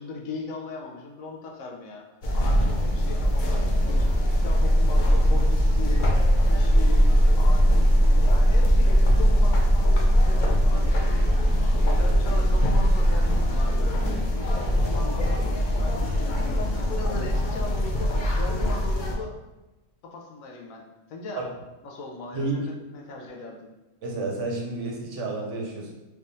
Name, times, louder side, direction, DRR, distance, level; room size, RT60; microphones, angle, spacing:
voice 1, 0.0-2.0 2.3-4.1 4.4-6.1 6.5-10.9 11.2-13.8 14.2-19.3 20.0-21.5 21.8-23.7, left 3 dB, 80° left, 1 dB, 1.1 m, -39 dB
sound 1, 2.2-19.2, equal, 55° left, 0.5 m, -21 dB
voice 2, 22.3-22.7 24.0-25.9, right 2 dB, 65° right, -1 dB, 1.0 m, -30 dB
3.4 x 3.3 x 2.6 m, 1.1 s
omnidirectional pair, 1.4 m